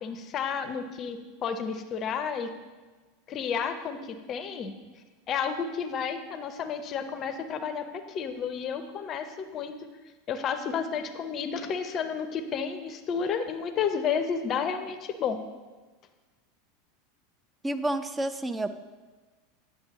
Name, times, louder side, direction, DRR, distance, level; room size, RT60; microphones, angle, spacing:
voice 1, 0.0-2.5 3.3-4.7 5.3-9.7 10.3-15.4, left 6 dB, 35° left, 9 dB, 0.6 m, -31 dB
voice 2, 17.6-18.7, right 1 dB, 15° right, 9 dB, 0.5 m, -29 dB
9.6 x 6.7 x 2.9 m, 1.3 s
figure-of-eight pair, 85°, 0 cm